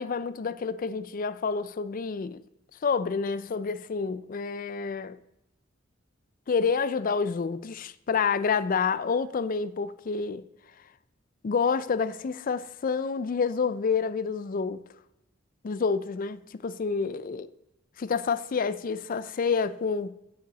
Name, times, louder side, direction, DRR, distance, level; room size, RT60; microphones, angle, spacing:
voice 1, 0.0-2.4 2.8-5.2 6.5-10.4 11.4-14.8 15.6-17.5 18.0-20.2, left 5 dB, 45° left, 0.4 m, -28 dB
16.5 x 5.7 x 4.0 m
head